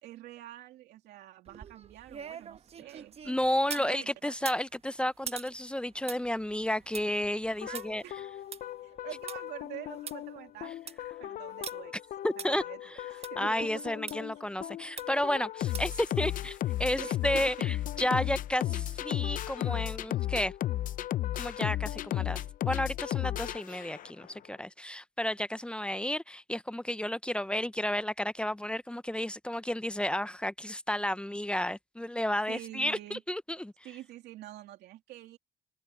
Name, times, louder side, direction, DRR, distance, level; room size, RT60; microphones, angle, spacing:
voice 1, 0.0-3.1 3.7-4.5 7.5-8.1 8.8-10.7 11.2-11.9 12.4-13.9 16.9-17.7 19.7-19.9 32.5-33.2 33.8-35.4, right 14 dB, 80° right, 2.8 m, -46 dB
sound 1, 1.4-3.9 4.3-9.4 9.7-9.8 10.1-10.2 10.6-11.0 11.6-11.7 12.4-12.5 13.2-13.3 14.1-14.2 15.0-15.3 15.7-16.0 16.4-16.5, right 7 dB, 35° right, 1.1 m, -43 dB
voice 2, 3.3-8.0 12.2-12.6 13.4-20.5 21.4-33.7, left 1 dB, 5° left, 0.7 m, -32 dB
sound 2, 7.6-24.3, left 13 dB, 55° left, 0.6 m, -35 dB
cardioid pair, 110°, 17 cm